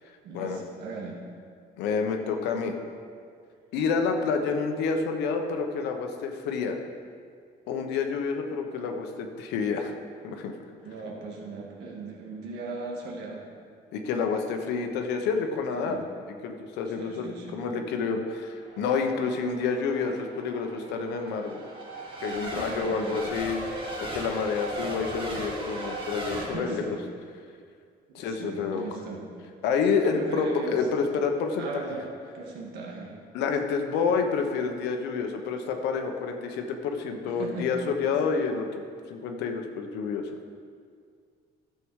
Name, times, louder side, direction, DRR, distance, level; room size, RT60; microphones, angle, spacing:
voice 1, 0.2-1.2 10.8-13.4 15.8-16.0 17.0-17.6 22.4-23.2 26.4-27.0 28.1-29.3 30.0-30.9 31.6-33.2 37.4-37.7, right 3 dB, 85° right, -1 dB, 1.9 m, -38 dB
voice 2, 1.8-2.7 3.7-6.8 7.7-9.9 10.2-10.5 13.9-16.0 16.4-21.6 22.2-23.6 24.1-26.8 28.1-28.8 29.6-31.8 33.3-40.4, left 5 dB, 90° left, 4 dB, 1.1 m, -28 dB
Race car auto racing / Accelerating revving vroom / Mechanisms, 18.6-26.5, right 1 dB, 30° right, 2.1 m, -37 dB
13.0 x 6.9 x 4.8 m, 2.1 s
cardioid pair, 110°, 17 cm